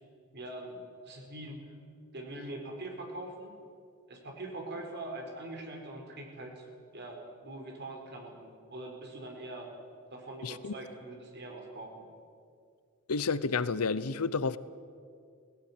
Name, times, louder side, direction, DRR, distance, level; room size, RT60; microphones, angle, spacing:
voice 1, 0.3-1.6 2.1-3.5 4.1-6.7 6.9-9.7 10.1-12.0, right 2 dB, 50° right, 2 dB, 4.3 m, -43 dB
voice 2, 10.4-10.7 13.1-14.6, left 4 dB, 80° left, 16 dB, 0.8 m, -30 dB
18.0 x 17.5 x 9.6 m, 2.2 s
head